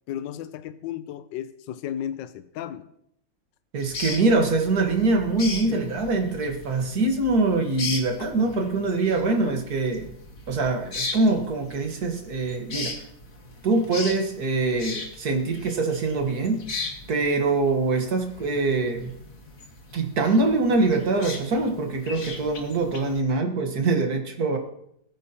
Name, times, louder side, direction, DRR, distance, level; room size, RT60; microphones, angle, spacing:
voice 1, 0.1-2.9 5.7-5.8 9.3-9.6, left 10 dB, 75° left, 11 dB, 1.3 m, -34 dB
voice 2, 3.7-10.1 10.5-12.9 13.6-16.6 17.1-19.1 19.9-24.6, right 3 dB, 55° right, 4 dB, 1.9 m, -24 dB
sound 1, 3.8-23.2, left 3 dB, 45° left, 1.9 m, -38 dB
20.5 x 9.2 x 2.9 m, 0.74 s
omnidirectional pair, 2.1 m